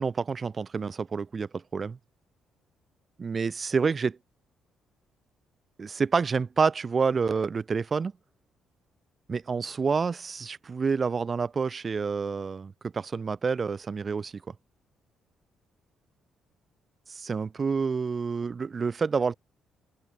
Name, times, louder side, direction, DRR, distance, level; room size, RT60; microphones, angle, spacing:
voice 1, 0.0-2.0 3.2-4.2 5.8-8.1 9.3-14.3 17.1-19.4, right 5 dB, 25° right, 2.6 m, -28 dB
cardioid pair, 170°, 0 cm